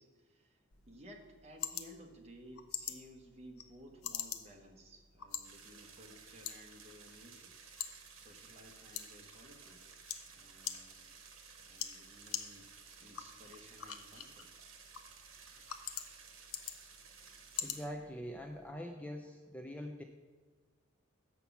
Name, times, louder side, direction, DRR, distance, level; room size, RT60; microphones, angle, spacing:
voice 1, 0.0-7.5 8.1-9.8 10.3-11.2 11.6-14.5, equal, 30° right, 2 dB, 1.0 m, -57 dB
sound 1, 0.7-18.7, left 9 dB, 85° left, 0.6 m, -47 dB
sound 2, 5.4-17.9, right 5 dB, 70° right, 1.2 m, -56 dB
voice 2, 17.6-20.0, equal, 5° left, 3 dB, 0.4 m, -44 dB
7.0 x 5.8 x 7.0 m, 1.4 s
head